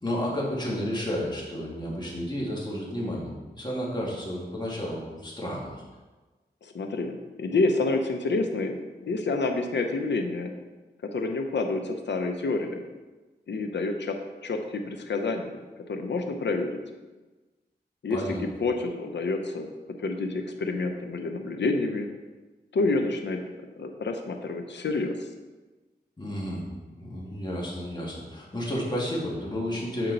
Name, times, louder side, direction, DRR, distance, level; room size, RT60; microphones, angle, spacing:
voice 1, 0.0-3.3 3.5-5.8 18.1-18.4 26.2-26.6 27.0-30.1, equal, 25° left, -4 dB, 1.9 m, -31 dB
voice 2, 6.6-10.5 11.0-12.8 13.5-14.2 14.4-15.6 15.9-16.8 18.0-19.7 20.0-22.1 22.7-23.4 23.8-25.3, left 3 dB, 85° left, 5 dB, 0.7 m, -28 dB
7.7 x 4.5 x 3.9 m, 1.2 s
wide cardioid pair, 75°, 18 cm